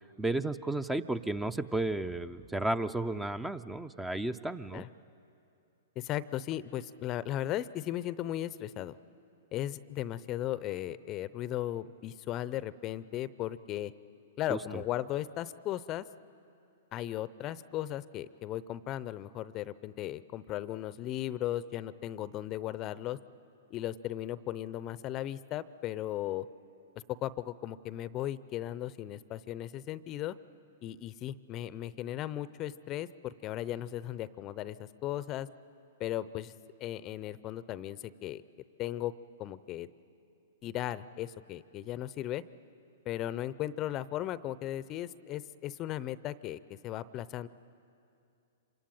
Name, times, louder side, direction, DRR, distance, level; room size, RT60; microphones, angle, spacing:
voice 1, 0.2-4.8 14.5-14.8, right 2 dB, 5° right, 12 dB, 0.6 m, -33 dB
voice 2, 6.0-9.0 9.5-13.9 14.4-16.0 16.9-23.2 23.7-26.5 27.2-30.4 30.8-35.5 36.0-36.5 36.8-38.4 38.8-39.1 39.4-39.9 40.6-42.4 43.0-47.5, left 13 dB, 35° left, 17 dB, 0.6 m, -36 dB
26.5 x 24.5 x 8.9 m, 2.6 s
hypercardioid pair, 120°, 0 cm